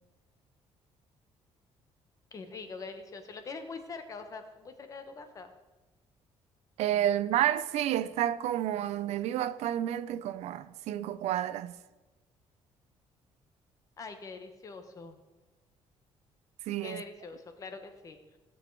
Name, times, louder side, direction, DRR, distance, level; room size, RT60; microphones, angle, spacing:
voice 1, 2.3-5.5 14.0-15.2 16.8-18.4, left 4 dB, 30° left, 1.1 m, -44 dB
voice 2, 6.8-11.8 16.7-17.0, right 12 dB, 80° right, 0.5 m, -30 dB
17.0 x 7.1 x 4.6 m
cardioid pair, 175°, 11 cm